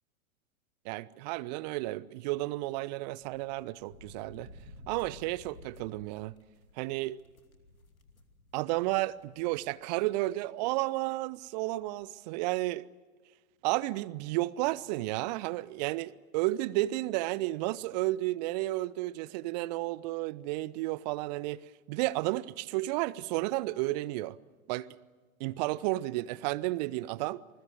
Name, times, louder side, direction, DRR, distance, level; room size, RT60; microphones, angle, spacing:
voice 1, 0.8-4.5 4.9-6.3 6.8-7.2 8.5-12.9 13.6-21.6 21.9-24.4 24.7-24.9 25.4-27.4, right 18 dB, 30° right, 0.7 m, -32 dB
sound 1, 3.0-9.7 10.1-10.2 11.3-11.4 11.6-11.9, left 2 dB, 75° left, 2.7 m, -54 dB
28.0 x 20.5 x 8.0 m
figure-of-eight pair, 100°, 42 cm